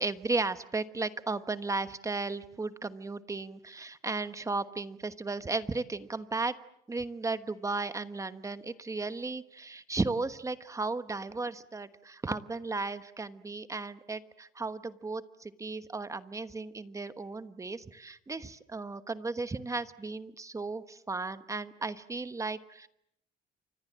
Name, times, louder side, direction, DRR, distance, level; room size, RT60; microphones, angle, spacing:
voice 1, 0.0-6.5 6.9-22.9, right 3 dB, 20° right, 12 dB, 1.2 m, -35 dB
29.5 x 25.0 x 7.5 m, 0.78 s
cardioid pair, 110°, 17 cm